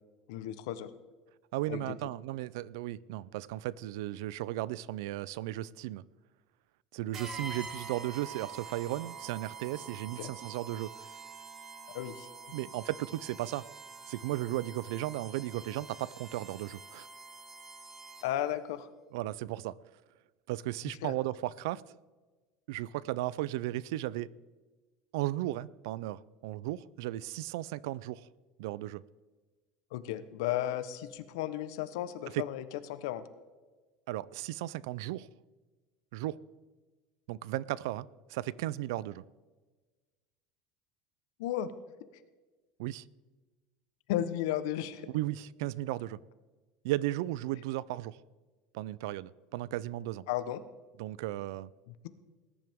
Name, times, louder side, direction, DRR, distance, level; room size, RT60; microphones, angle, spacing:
voice 1, 0.3-0.9 1.7-1.9 10.2-10.3 11.9-12.3 18.2-18.9 20.8-21.1 29.9-32.6 32.9-33.3 41.4-41.7 44.1-45.1 50.3-50.6 51.9-52.1, left 12 dB, 70° left, 0.9 m, -34 dB
voice 2, 1.5-6.0 6.9-11.1 12.5-13.7 14.1-17.1 19.1-19.8 20.5-21.8 22.7-24.3 25.1-28.3 28.6-29.0 32.3-32.4 34.1-35.3 36.1-36.4 37.3-39.2 42.8-43.0 45.1-46.2 46.8-48.2 48.7-50.2 51.0-51.7, right 15 dB, 75° right, 0.4 m, -35 dB
sound 1, 7.1-18.5, right 4 dB, 15° right, 1.2 m, -46 dB
19.5 x 11.0 x 3.6 m
cardioid pair, 175°, 2 cm